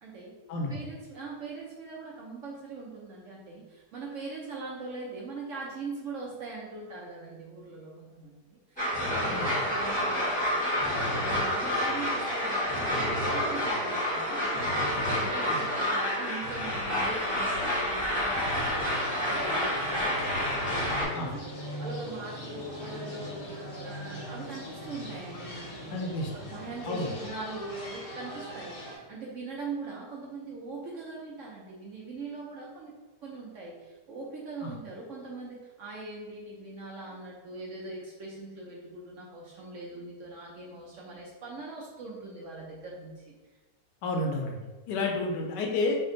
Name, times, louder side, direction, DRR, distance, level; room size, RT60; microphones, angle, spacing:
voice 1, 0.0-0.4 0.7-20.5 20.8-23.5 23.8-26.0 26.3-32.9 33.2-43.3, right 3 dB, 70° right, -3 dB, 0.7 m, -41 dB
sound 1, 8.8-21.0, left 1 dB, 5° left, 0.8 m, -29 dB
sound 2, 18.4-29.0, equal, 45° left, 0.8 m, -41 dB
voice 2, 25.9-26.3 26.9-27.1 34.6-34.7 44.0-44.6 44.9-46.0, left 2 dB, 75° left, 2 dB, 1.2 m, -30 dB
3.3 x 2.2 x 3.7 m, 1.2 s
omnidirectional pair, 1.9 m